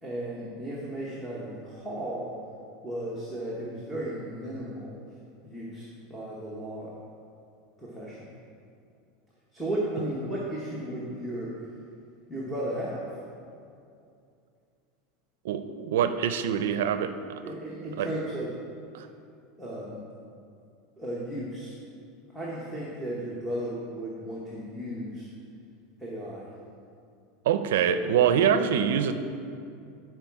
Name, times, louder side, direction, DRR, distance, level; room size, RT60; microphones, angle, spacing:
voice 1, 0.0-2.4 2.8-4.9 5.4-6.9 7.8-8.3 9.5-11.5 12.3-13.0 17.4-18.5 19.6-20.0 21.0-21.7 22.3-25.3 26.0-26.5, right 1 dB, ahead, -7 dB, 1.0 m, -35 dB
voice 2, 15.4-17.1 18.0-18.1 18.9-19.1 27.5-29.1, right 8 dB, 85° right, 10 dB, 0.5 m, -24 dB
11.5 x 4.6 x 4.7 m, 2.5 s
supercardioid pair, 170°, 0 cm